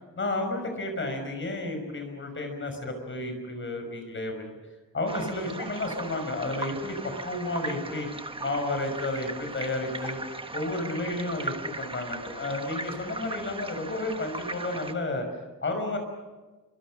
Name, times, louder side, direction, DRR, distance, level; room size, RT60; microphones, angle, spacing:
voice 1, 0.1-4.5 4.9-7.0 7.2-8.1 8.4-10.2 10.5-15.2 15.6-16.0, left 2 dB, 35° left, 5 dB, 5.7 m, -31 dB
sound 1, 5.1-14.9, right 2 dB, 15° right, 1.3 m, -38 dB
27.5 x 25.5 x 6.4 m, 1.2 s
wide cardioid pair, 165°, 33 cm